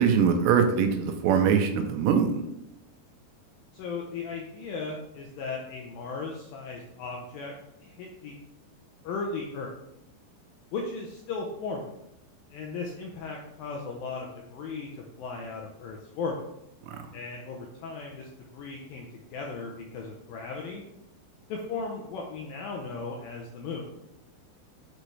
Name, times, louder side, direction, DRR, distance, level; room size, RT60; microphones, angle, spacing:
voice 1, 0.0-2.4 16.9-17.0, right 7 dB, 85° right, 5 dB, 2.9 m, -22 dB
voice 2, 3.7-7.5 7.8-8.3 9.0-9.7 10.7-11.9 12.5-14.9 15.2-16.4 17.1-20.8 21.5-23.9, left 4 dB, 85° left, 0 dB, 2.0 m, -36 dB
7.8 x 4.8 x 3.2 m, 0.84 s
omnidirectional pair, 4.9 m